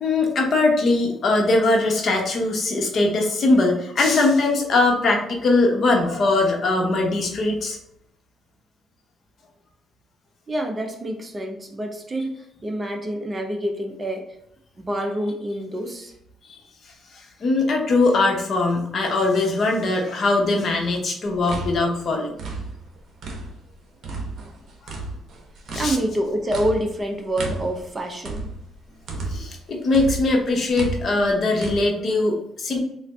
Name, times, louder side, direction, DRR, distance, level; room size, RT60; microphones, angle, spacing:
voice 1, 0.0-7.8 16.5-16.6 17.4-22.4 25.7-26.0 29.3-32.8, left 2 dB, 55° left, 1 dB, 0.9 m, -21 dB
voice 2, 10.5-14.4 14.8-16.1 25.7-28.5, right 1 dB, 25° right, 4 dB, 0.6 m, -27 dB
sound 1, 21.3-23.7 24.0-29.6 29.9-31.8, right 2 dB, 65° right, 0.8 m, -33 dB
3.9 x 2.5 x 3.3 m, 0.75 s
cardioid pair, 90°, 0 cm